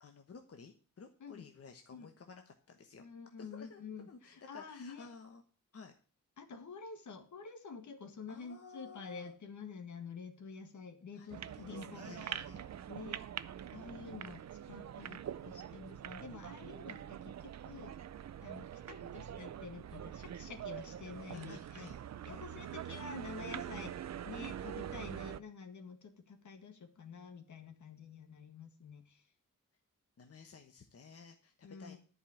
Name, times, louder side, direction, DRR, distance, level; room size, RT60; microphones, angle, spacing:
voice 1, 0.0-3.1 3.4-3.8 4.1-5.4 5.7-5.9 8.3-9.3 11.1-12.6 19.0-19.1 21.3-22.0 22.3-22.7 30.2-32.0, left 5 dB, 50° left, 5 dB, 1.2 m, -54 dB
voice 2, 3.0-5.1 6.4-12.4 12.9-13.2 13.7-18.0 18.4-21.9 22.3-29.2 31.6-32.0, left 5 dB, 65° left, 7 dB, 1.9 m, -49 dB
sound 1, 11.3-25.4, right 10 dB, 55° right, 0.6 m, -44 dB
10.5 x 5.5 x 8.4 m, 0.40 s
wide cardioid pair, 120°, 32 cm